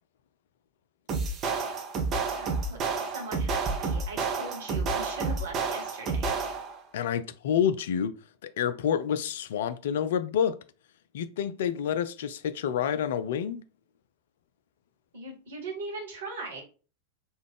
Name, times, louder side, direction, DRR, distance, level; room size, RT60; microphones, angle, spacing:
sound 1, 1.1-6.8, right 4 dB, 30° right, 0.7 m, -30 dB
voice 1, 2.3-6.4 15.1-16.6, right 2 dB, 65° right, 1.3 m, -40 dB
voice 2, 6.9-8.1 8.6-10.6 11.1-13.6, left 8 dB, 55° left, 0.3 m, -28 dB
3.5 x 2.3 x 3.4 m
figure-of-eight pair, 90°, 0 cm